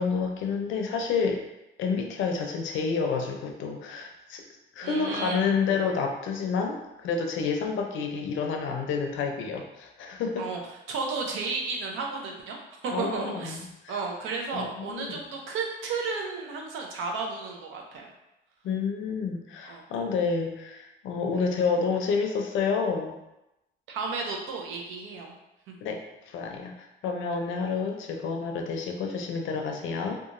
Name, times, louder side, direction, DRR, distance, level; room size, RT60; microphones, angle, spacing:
voice 1, 0.0-1.5 1.8-4.4 4.8-10.5 12.9-14.0 14.5-15.2 18.6-23.1 25.8-30.2, left 5 dB, 80° left, 3 dB, 0.5 m, -29 dB
voice 2, 4.8-5.5 10.4-10.6 10.9-12.6 12.8-13.6 13.9-18.1 19.7-20.1 23.9-25.4 25.7-25.8, right 4 dB, 90° right, 1 dB, 0.6 m, -33 dB
2.8 x 2.3 x 2.5 m, 0.91 s
cardioid pair, 90°, 20 cm